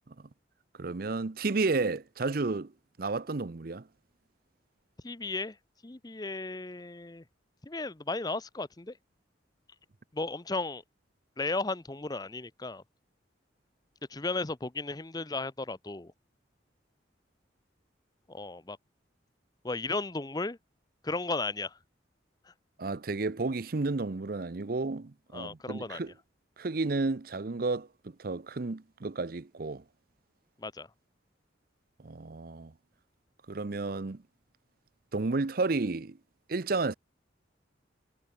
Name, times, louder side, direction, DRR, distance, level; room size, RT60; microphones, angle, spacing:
voice 1, 0.8-2.7 3.0-3.9 22.8-26.1 26.6-27.9 28.2-29.8 32.0-32.7 33.5-34.2 35.1-36.2 36.5-36.9, right 3 dB, 50° right, 0.7 m, -31 dB
voice 2, 5.0-5.6 5.8-7.2 7.6-9.0 10.1-10.8 11.4-12.8 14.1-16.1 18.3-18.8 19.6-20.6 21.0-21.8 22.5-22.6 25.3-26.0 30.6-30.9, left 3 dB, 20° left, 0.7 m, -35 dB
head